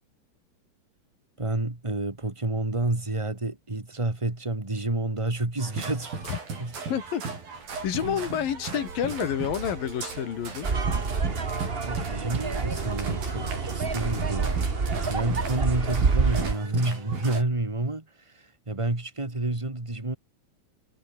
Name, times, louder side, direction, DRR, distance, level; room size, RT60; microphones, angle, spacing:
voice 1, 1.4-6.2 6.6-6.7 8.0-8.4 11.8-14.6 15.0-20.2, right 2 dB, 10° right, 1.9 m, -29 dB
sound 1, 5.6-17.4, right 4 dB, 80° right, 8.1 m, -36 dB
voice 2, 6.9-7.3 7.8-10.7, left 9 dB, 75° left, 4.0 m, -29 dB
sound 2, 10.6-16.5, right 4 dB, 50° right, 0.7 m, -27 dB
omnidirectional pair, 4.1 m